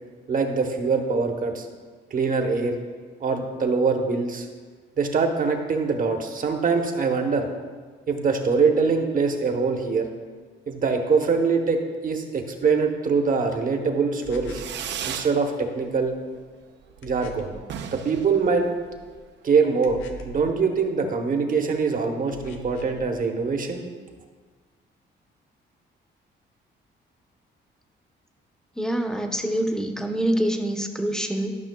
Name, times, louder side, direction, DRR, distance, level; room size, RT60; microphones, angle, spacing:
voice 1, 0.3-1.7 2.1-2.8 3.2-4.5 5.0-7.5 8.1-10.1 10.7-14.6 15.0-16.1 17.0-17.5 17.9-18.7 19.4-23.8, right 5 dB, 45° right, 4 dB, 0.9 m, -23 dB
sound 1, 14.2-14.8 17.0-17.6 19.8-20.5 22.3-23.0, left 1 dB, 90° left, 0.6 m, -41 dB
Fireworks, 14.4-15.4 15.7-16.3 16.6-16.7 16.9-17.0 17.3-17.4 17.6-19.2, right 8 dB, 65° right, 0.5 m, -35 dB
voice 2, 28.8-31.6, right 1 dB, 5° left, 4 dB, 0.7 m, -25 dB
12.0 x 5.7 x 2.2 m, 1.5 s
cardioid pair, 90°, 20 cm